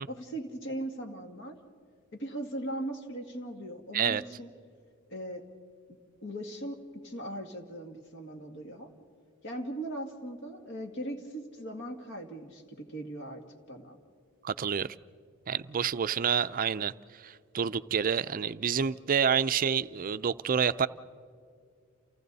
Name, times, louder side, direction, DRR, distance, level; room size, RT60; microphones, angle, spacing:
voice 1, 0.1-1.6 2.1-4.5 5.1-5.4 6.2-8.9 9.4-13.4 13.7-14.0, right 1 dB, 60° left, 2.1 m, -39 dB
voice 2, 14.4-14.9 15.5-16.9 17.2-20.9, right 7 dB, 40° right, 0.4 m, -28 dB
29.0 x 29.0 x 4.1 m
head